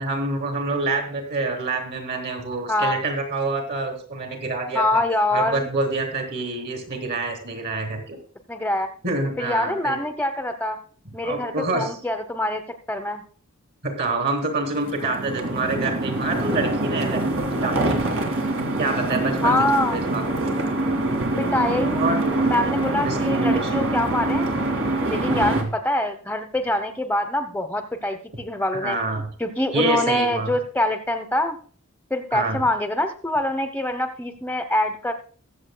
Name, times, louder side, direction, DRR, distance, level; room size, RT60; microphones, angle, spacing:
voice 1, 0.0-5.0 5.3-8.2 9.0-10.0 11.2-11.9 13.8-18.2 18.8-19.6 19.9-20.2 21.3-21.5 22.0-22.2 23.0-23.9 25.3-25.7 28.8-29.3 29.7-30.5 32.3-32.6, right 2 dB, 50° right, 4 dB, 3.6 m, -27 dB
voice 2, 2.7-3.0 4.7-5.7 8.5-8.9 9.4-10.8 11.1-12.6 12.9-13.2 19.4-20.0 21.4-22.1 22.5-24.5 25.1-29.0 29.4-31.6 32.1-35.1, left 1 dB, 10° left, 6 dB, 1.0 m, -24 dB
sound 1, 14.7-25.6, right 2 dB, 65° right, 2.4 m, -24 dB
22.0 x 7.5 x 2.3 m, 0.43 s
head